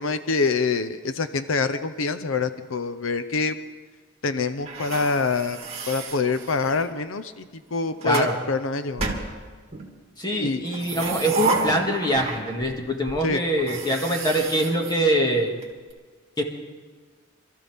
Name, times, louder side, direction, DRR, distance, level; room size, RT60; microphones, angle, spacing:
voice 1, 0.0-3.6 4.2-5.6 5.9-7.4 7.7-9.2 10.4-10.6 13.2-13.4, left 4 dB, 75° left, 11 dB, 0.7 m, -25 dB
sound 1, 4.7-6.9 7.7-8.3 9.0-9.9 10.6-12.8 13.1-13.2 13.6-15.6, right 3 dB, 30° right, 2.5 m, -31 dB
voice 2, 8.0-8.4 10.2-15.5 16.4-16.5, right 1 dB, 20° left, 1 dB, 2.1 m, -24 dB
26.5 x 14.5 x 3.6 m, 1.5 s
head